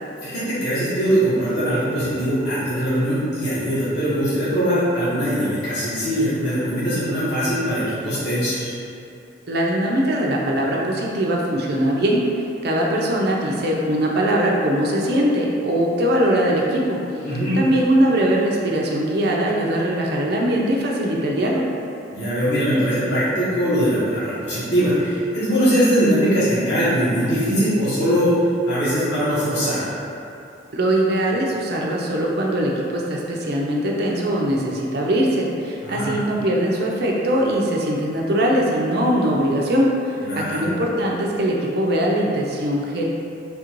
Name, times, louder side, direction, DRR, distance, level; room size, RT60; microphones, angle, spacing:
voice 1, 0.2-8.7 17.2-17.6 22.1-28.3 28.7-29.9 35.8-36.2 40.2-40.6, equal, 70° left, -12 dB, 1.2 m, -21 dB
voice 2, 9.5-12.2 12.6-17.0 17.5-21.6 30.7-43.1, right 1 dB, 60° right, -2 dB, 0.6 m, -21 dB
3.4 x 2.5 x 4.5 m, 2.7 s
head